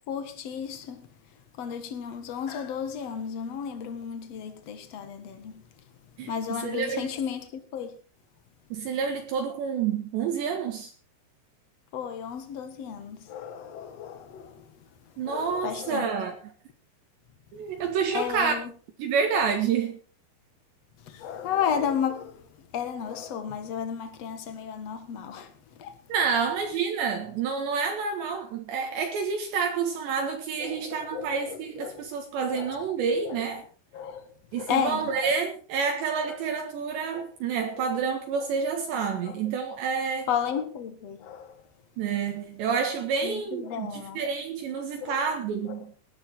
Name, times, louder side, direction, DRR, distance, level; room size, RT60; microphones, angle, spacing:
voice 1, 0.1-1.1 1.6-5.6 6.2-8.0 11.9-14.7 15.2-16.1 18.1-18.7 21.0-25.5 25.8-25.9 30.6-32.1 32.5-32.8 33.2-33.4 33.9-35.1 36.3-36.4 37.1-37.2 37.8-37.9 38.3-38.5 39.2-39.3 40.3-41.6 43.2-44.2 45.0-45.2 45.7-45.8, left 8 dB, 70° left, 1.5 m, -33 dB
voice 2, 6.2-7.1 8.7-10.9 15.2-16.4 17.5-18.5 19.0-20.0 26.1-33.6 34.5-40.3 42.0-45.9, right 6 dB, 70° right, 3.7 m, -28 dB
18.5 x 11.0 x 4.6 m
omnidirectional pair, 5.7 m